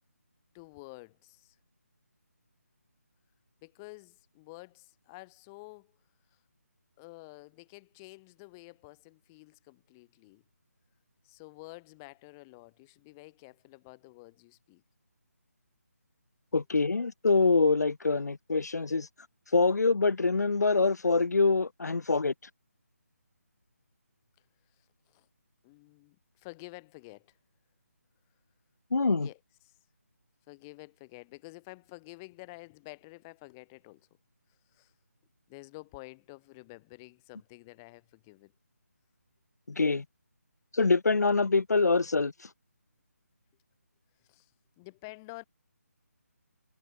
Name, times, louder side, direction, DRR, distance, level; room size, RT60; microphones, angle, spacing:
voice 1, 0.5-1.6 3.6-5.9 7.0-10.4 11.2-14.8 16.5-16.6 25.1-25.3 25.6-27.4 29.2-29.4 29.6-29.8 30.5-34.1 34.7-34.9 35.5-38.5 44.3-44.5 44.8-45.4, left 26 dB, 10° left, 1.3 m, -50 dB
voice 2, 16.5-19.1 19.5-22.3 28.9-29.3 39.7-40.0 40.7-42.3, left 3 dB, 80° left, 1.0 m, -25 dB
hypercardioid pair, 175°, 9 cm